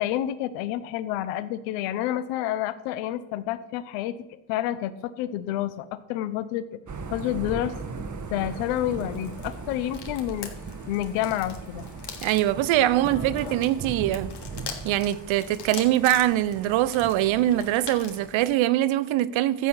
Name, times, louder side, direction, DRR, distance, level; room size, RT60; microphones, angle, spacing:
voice 1, 0.0-4.2 4.5-6.7 7.1-8.0 8.3-10.5 10.9-11.9, left 12 dB, 80° left, 1.1 m, -29 dB
Thunder / Rain, 6.9-18.6, right 4 dB, 35° right, 1.7 m, -39 dB
sound 1, 8.4-18.3, left 6 dB, 50° left, 3.2 m, -43 dB
voice 2, 12.2-14.3 14.8-19.7, right 13 dB, 65° right, 0.9 m, -23 dB
14.0 x 9.1 x 6.6 m
hypercardioid pair, 55°, 50 cm